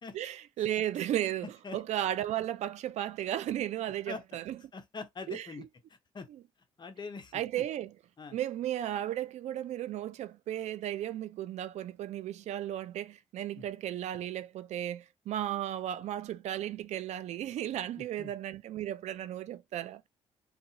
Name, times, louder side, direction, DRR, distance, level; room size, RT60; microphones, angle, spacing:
voice 1, 0.1-4.6 5.3-5.7 6.3-6.4 7.3-8.0 8.3-20.1, right 12 dB, 70° right, 0.4 m, -35 dB
voice 2, 4.7-5.6 6.1-6.3 6.8-7.3 8.2-8.4 13.6-13.7 18.2-18.3, left 4 dB, 40° left, 0.9 m, -42 dB
2.7 x 2.6 x 2.8 m
cardioid pair, 85°, 12 cm